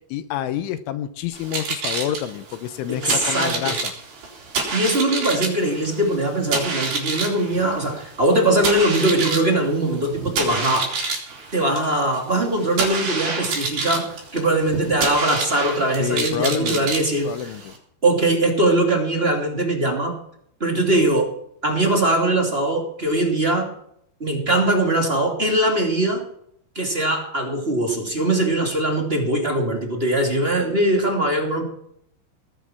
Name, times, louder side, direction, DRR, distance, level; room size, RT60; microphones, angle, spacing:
voice 1, 0.1-3.9 16.0-16.9 17.2-17.7, left 11 dB, 85° left, 10 dB, 3.3 m, -28 dB
sound 1, 1.3-17.8, right 4 dB, 55° right, 5.8 m, -28 dB
voice 2, 2.9-3.7 4.7-10.9 11.5-17.5 18.0-20.2 20.6-21.3 21.6-23.7 24.2-26.2 26.7-31.6, right 1 dB, 20° right, 1 dB, 1.9 m, -21 dB
19.5 x 10.0 x 5.9 m, 0.69 s
omnidirectional pair, 5.5 m